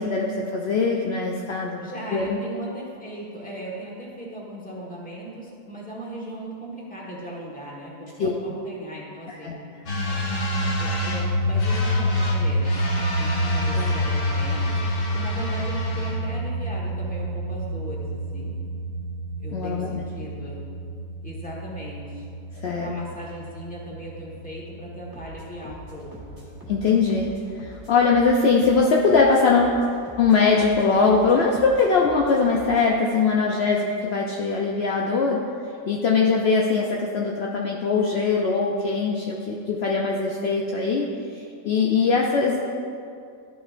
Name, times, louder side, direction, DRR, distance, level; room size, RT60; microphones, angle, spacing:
voice 1, 0.0-1.8 2.1-2.4 8.2-8.3 9.4-9.5 13.7-13.9 19.5-20.0 22.6-22.9 26.7-27.3 27.6-29.8 30.2-35.4 35.9-42.6, left 4 dB, 70° left, -1 dB, 0.6 m, -21 dB
voice 2, 1.8-9.6 10.1-12.8 13.1-14.8 15.1-18.6 19.4-20.6 21.2-22.3 22.7-26.4, right 1 dB, 5° left, -5 dB, 1.2 m, -38 dB
sound 1, 9.9-27.3, equal, 55° left, 1.6 m, -27 dB
sound 2, 25.1-32.9, right 1 dB, 15° right, 1.5 m, -45 dB
12.0 x 5.8 x 2.5 m, 2.4 s
omnidirectional pair, 1.7 m